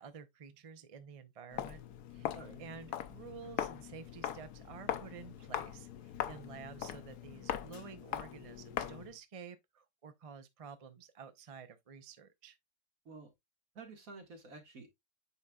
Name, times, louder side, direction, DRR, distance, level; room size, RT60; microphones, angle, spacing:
voice 1, 0.0-1.8 2.1-12.6, right 6 dB, 40° right, 0.5 m, -51 dB
Walk footsteps, 1.5-9.2, left 10 dB, 90° left, 1.3 m, -41 dB
voice 2, 13.7-14.9, right 3 dB, 60° right, 2.3 m, -50 dB
8.3 x 5.4 x 2.3 m
omnidirectional pair, 1.6 m